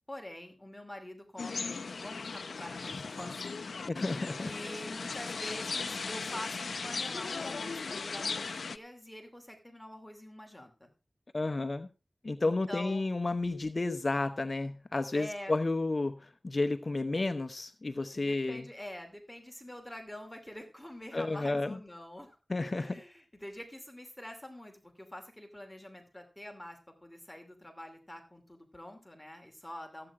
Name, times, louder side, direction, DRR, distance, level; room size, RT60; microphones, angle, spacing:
voice 1, 0.1-10.9 12.4-13.0 15.1-15.5 18.1-22.4 22.7-30.1, left 1 dB, 10° left, 5 dB, 2.6 m, -46 dB
sound 1, 1.4-8.8, left 4 dB, 90° left, 0.6 m, -37 dB
voice 2, 3.9-4.5 11.3-11.9 12.2-18.6 21.1-21.8 22.5-23.0, left 2 dB, 45° left, 9 dB, 0.8 m, -32 dB
14.5 x 8.8 x 4.7 m, 0.31 s
wide cardioid pair, 65°, 0 cm